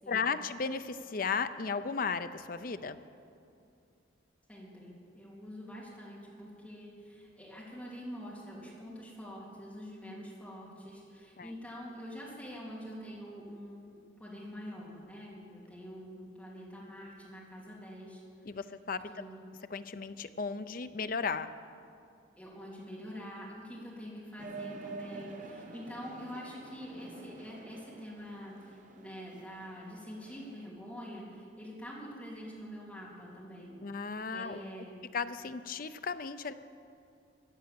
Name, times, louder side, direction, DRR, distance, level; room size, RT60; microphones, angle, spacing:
voice 1, 0.1-3.0 11.4-11.5 18.5-19.2 19.7-21.5 33.8-34.6 35.1-36.5, left 5 dB, 45° left, 11 dB, 0.5 m, -35 dB
voice 2, 4.5-13.8 14.2-18.2 19.1-19.4 22.4-33.8 34.3-35.0, equal, 5° left, -6 dB, 3.3 m, -45 dB
sound 1, 24.4-30.7, right 3 dB, 40° right, 0.9 m, -48 dB
16.0 x 9.6 x 7.6 m, 2.6 s
head